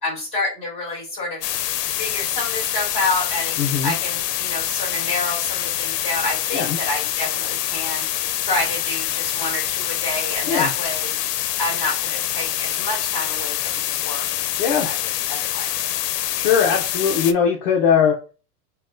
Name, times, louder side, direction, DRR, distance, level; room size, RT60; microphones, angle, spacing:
voice 1, 0.0-1.4 2.0-3.5 3.8-8.0 8.5-11.1 11.6-14.3 14.7-15.0 15.3-15.8, left 2 dB, 15° left, -3 dB, 2.2 m, -28 dB
sound 1, 1.4-17.3, left 12 dB, 85° left, 0.6 m, -25 dB
voice 2, 3.6-3.9 6.5-6.8 10.5-10.7 14.6-14.9 16.4-18.2, left 7 dB, 40° left, 1 dB, 0.6 m, -20 dB
5.7 x 2.3 x 2.5 m, 0.34 s
supercardioid pair, 165°, 47 cm